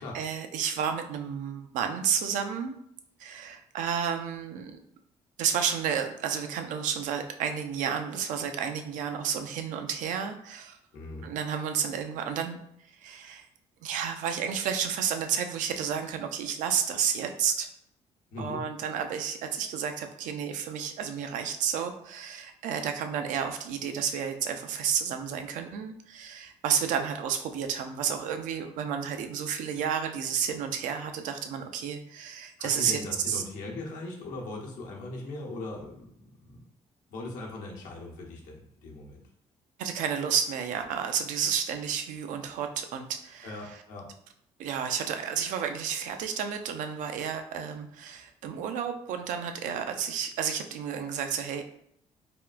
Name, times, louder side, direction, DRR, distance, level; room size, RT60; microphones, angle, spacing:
voice 1, 0.0-2.7 3.2-4.8 5.4-10.8 11.2-12.6 12.9-13.5 13.8-17.7 18.4-33.0 33.3-33.4 39.8-43.8 44.6-51.6, right 7 dB, 75° right, 6 dB, 0.4 m, -31 dB
voice 2, 10.9-11.3 18.3-18.6 32.6-36.6 37.1-39.2 43.4-44.1, left 2 dB, 80° left, -1 dB, 0.8 m, -39 dB
3.5 x 2.3 x 2.4 m, 0.72 s
supercardioid pair, 70°, 13 cm